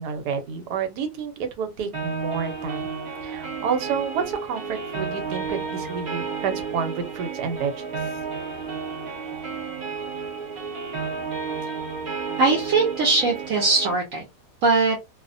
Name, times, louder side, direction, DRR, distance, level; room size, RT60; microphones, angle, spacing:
voice 1, 0.0-7.7, right 6 dB, 90° right, 1.2 m, -29 dB
sound 1, 1.9-13.9, right 5 dB, 45° right, 1.1 m, -32 dB
voice 2, 12.4-14.2 14.6-15.0, right 3 dB, 65° right, 1.0 m, -20 dB
2.7 x 2.0 x 2.5 m
omnidirectional pair, 1.7 m